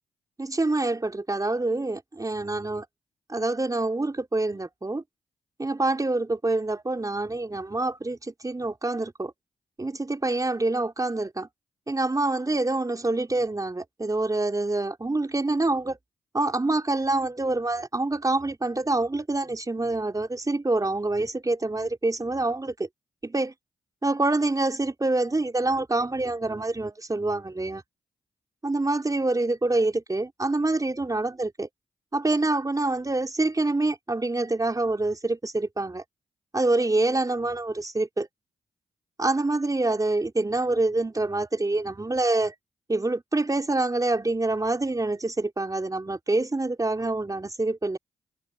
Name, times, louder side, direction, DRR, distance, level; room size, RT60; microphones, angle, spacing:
voice 1, 0.4-2.8 3.3-5.0 5.6-9.3 9.8-11.5 11.9-16.0 16.3-22.9 23.2-23.5 24.0-27.8 28.6-31.7 32.1-36.0 36.5-38.3 39.2-42.5 42.9-48.0, right 2 dB, 25° right, 4.6 m, -26 dB
hypercardioid pair, 40°, 13 cm